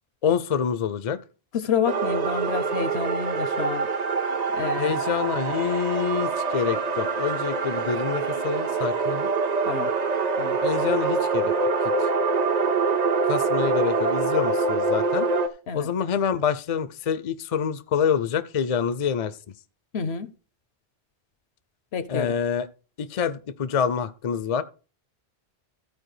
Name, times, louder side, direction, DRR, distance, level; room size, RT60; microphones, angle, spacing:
voice 1, 0.2-1.2 4.8-9.3 10.6-11.5 12.0-12.1 13.2-15.3 15.7-19.4 22.1-22.7 23.0-24.6, left 7 dB, 45° left, 0.5 m, -26 dB
voice 2, 1.5-3.9 4.5-4.9 9.6-9.9 10.4-10.6 15.7-15.9 19.9-20.3 21.9-22.3, left 7 dB, 80° left, 1.1 m, -28 dB
sound 1, 1.8-15.5, right 4 dB, 45° right, 0.8 m, -25 dB
14.0 x 4.8 x 4.9 m
omnidirectional pair, 1.1 m